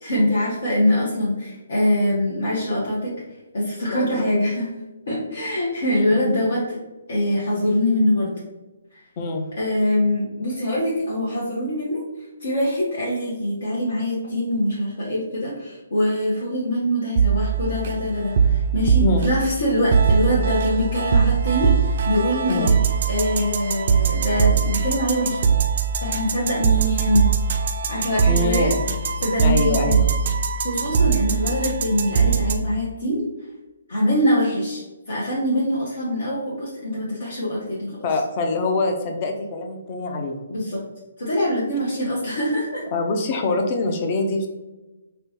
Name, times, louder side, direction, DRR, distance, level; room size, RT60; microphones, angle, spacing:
voice 1, 0.0-3.2 3.5-4.7 5.1-6.8 7.1-8.3 8.9-9.0 9.6-12.0 12.4-22.7 23.1-25.5 26.0-27.3 27.9-28.7 29.2-30.0 30.6-33.3 33.9-38.0 40.5-40.8 41.2-42.8, left 1 dB, 60° left, -6 dB, 0.9 m, -23 dB
voice 2, 3.9-4.3 6.1-6.2 9.2-9.4 19.0-19.3 22.5-22.7 28.2-28.7 29.4-30.1 38.0-40.4 42.9-44.5, left 3 dB, 35° left, 3 dB, 0.6 m, -24 dB
sound 1, 17.2-32.6, right 6 dB, 45° right, 0.3 m, -21 dB
4.3 x 2.2 x 2.8 m, 1.1 s
figure-of-eight pair, 140°, 0 cm